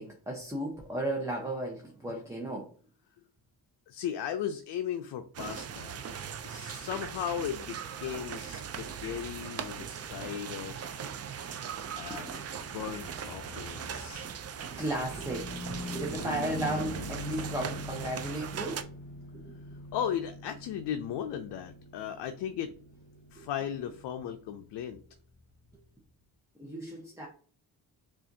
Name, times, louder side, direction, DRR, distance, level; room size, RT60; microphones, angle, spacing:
voice 1, 0.0-2.7 9.8-9.9 12.1-12.4 14.6-18.9 19.4-19.5 23.4-23.5 26.6-27.3, right 1 dB, 5° right, -1 dB, 0.8 m, -35 dB
voice 2, 3.9-6.1 6.4-11.0 11.9-14.3 19.9-22.7 23.3-25.0, left 9 dB, 75° left, 8 dB, 0.5 m, -36 dB
sound 1, 5.3-18.8, right 7 dB, 40° right, 0.4 m, -40 dB
Car passing by / Truck, 12.2-25.8, left 1 dB, 50° left, 1.5 m, -43 dB
5.4 x 2.5 x 2.6 m, 0.43 s
cardioid pair, 105°, 42 cm